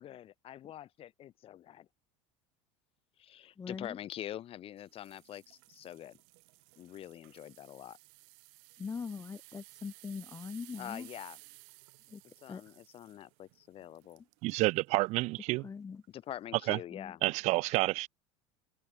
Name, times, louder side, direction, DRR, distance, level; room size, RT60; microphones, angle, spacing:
voice 1, 0.0-1.9 3.2-6.2 6.8-8.0 10.8-11.4 12.4-14.2 16.1-17.2, left 12 dB, 40° left, 1.6 m, -45 dB
voice 2, 3.6-4.0 8.8-11.1 12.1-12.8 15.6-16.0 16.9-17.2, left 5 dB, 20° left, 1.6 m, -42 dB
sound 1, 4.9-14.8 15.3-15.5 16.0-16.1, right 35 dB, 70° right, 1.8 m, -57 dB
voice 3, 14.4-15.6 16.7-16.8 17.2-18.1, right 21 dB, 50° right, 0.4 m, -29 dB
supercardioid pair, 115°, 15 cm